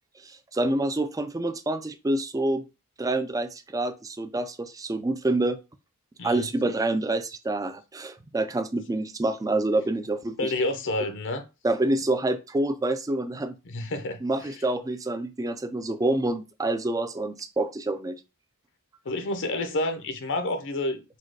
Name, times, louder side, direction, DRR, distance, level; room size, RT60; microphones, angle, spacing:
voice 1, 0.2-2.6 3.0-5.6 6.2-10.5 11.6-13.6 14.2-18.2, right 2 dB, 15° right, 0.4 m, -27 dB
voice 2, 6.2-6.5 10.4-11.4 13.6-14.6 19.0-21.2, left 2 dB, 55° left, 0.6 m, -29 dB
4.2 x 2.3 x 4.7 m
head